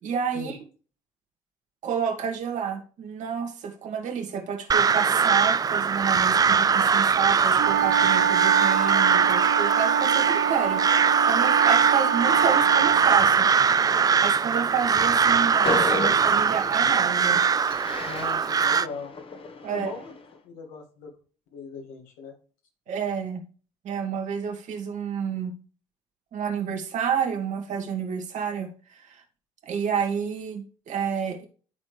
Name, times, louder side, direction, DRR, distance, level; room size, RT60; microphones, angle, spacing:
voice 1, 0.0-0.6 1.8-13.5 14.2-17.4 19.6-19.9 22.9-23.4 23.8-25.5 26.3-29.2 29.6-31.5, right 7 dB, 60° right, 3 dB, 1.8 m, -29 dB
Crow, 4.7-18.9, right 6 dB, 25° right, 0.4 m, -21 dB
sound 1, 7.6-13.1, right 8 dB, 80° right, 0.6 m, -25 dB
Train, 15.0-20.3, left 3 dB, 40° left, 1.4 m, -35 dB
voice 2, 18.0-19.1 19.7-20.1 20.4-21.1 21.5-22.3, left 4 dB, 75° left, 3 dB, 2.1 m, -39 dB
12.0 x 4.2 x 3.3 m, 0.38 s
hypercardioid pair, 60°, 14 cm